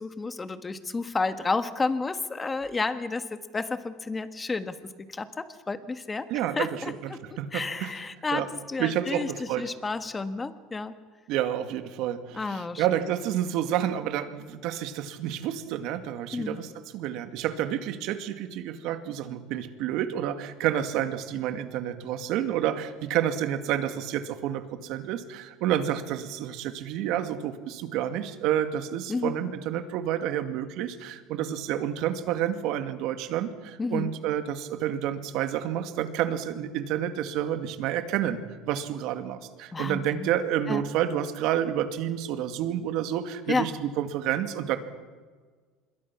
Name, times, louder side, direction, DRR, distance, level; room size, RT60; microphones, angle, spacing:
voice 1, 0.0-4.8 5.1-6.2 6.6-7.2 7.5-9.3 9.6-10.9 12.3-12.8 16.3-16.6 29.1-29.4 33.8-34.1 39.7-40.3 40.7-40.8 43.5-43.7, left 3 dB, 15° left, 10 dB, 1.4 m, -31 dB
voice 2, 6.3-7.9 8.3-8.5 8.8-9.7 11.3-38.4 38.7-44.8, right 10 dB, 60° right, 8 dB, 2.2 m, -29 dB
26.5 x 22.0 x 6.1 m, 1.5 s
cardioid pair, 135°, 0 cm